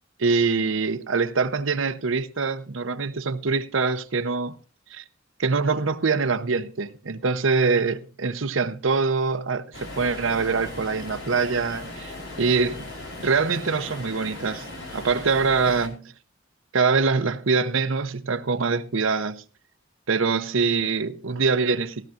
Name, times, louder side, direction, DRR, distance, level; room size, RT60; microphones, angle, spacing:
voice 1, 0.2-4.6 4.9-5.0 5.4-12.8 13.2-16.1 16.7-19.4 20.1-22.1, right 4 dB, 80° right, 0.8 m, -24 dB
sound 1, 9.7-15.9, left 2 dB, 75° left, 4.4 m, -38 dB
17.0 x 13.5 x 2.5 m
head